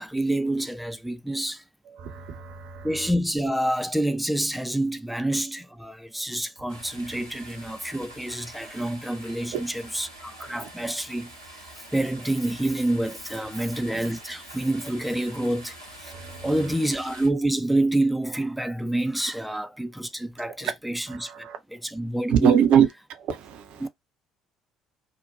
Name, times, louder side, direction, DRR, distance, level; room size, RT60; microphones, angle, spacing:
voice 1, 0.0-1.6 2.8-16.1 16.4-22.6 23.8-23.9, right 1 dB, ahead, 0.4 m, -28 dB
voice 2, 2.0-2.9 9.5-9.6 10.6-10.7 16.1-16.3 20.6-20.7 21.1-21.6 22.3-22.9 23.3-23.8, right 9 dB, 55° right, 0.5 m, -23 dB
sound 1, 6.7-17.3, right 1 dB, 90° right, 0.8 m, -45 dB
2.7 x 2.1 x 2.7 m
figure-of-eight pair, 50°, 2 cm